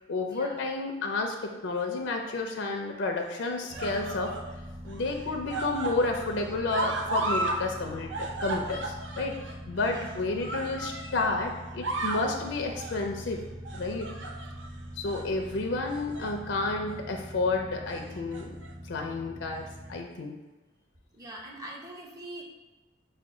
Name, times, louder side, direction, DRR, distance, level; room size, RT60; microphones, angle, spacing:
voice 1, 0.1-4.3 4.8-13.4 13.7-14.1 15.0-18.6 18.8-20.3, left 3 dB, 75° left, 3 dB, 0.5 m, -31 dB
sound 1, 1.8-2.3 3.2-4.5 4.9-7.6 7.9-11.4 11.7-12.3 12.8-13.1 13.7-14.7 15.1-15.3 15.9-16.4 16.8-17.0 18.1-18.7 19.6-19.7, right 2 dB, 75° right, 0.5 m, -35 dB
sound 2, 3.7-20.0, equal, 35° right, 1.0 m, -43 dB
voice 2, 21.1-22.4, right 1 dB, 20° right, -1 dB, 0.6 m, -43 dB
5.7 x 2.3 x 3.6 m, 1.1 s
head